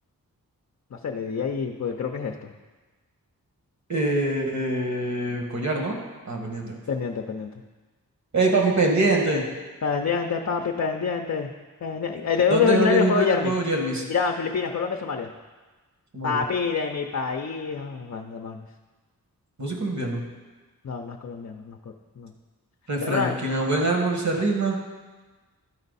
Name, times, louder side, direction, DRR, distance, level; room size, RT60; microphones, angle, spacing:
voice 1, 0.9-2.5 6.9-7.5 9.8-11.5 11.8-13.5 14.1-15.3 16.2-18.6 20.8-21.8 22.2-22.3 23.0-23.4, left 5 dB, 50° left, 2 dB, 0.6 m, -26 dB
voice 2, 3.9-6.0 6.3-6.8 8.3-9.4 12.5-14.0 16.1-16.4 19.6-20.2 22.9-24.8, right 2 dB, 50° right, 1 dB, 1.7 m, -24 dB
12.0 x 4.4 x 4.1 m, 1.3 s
cardioid pair, 55°, 36 cm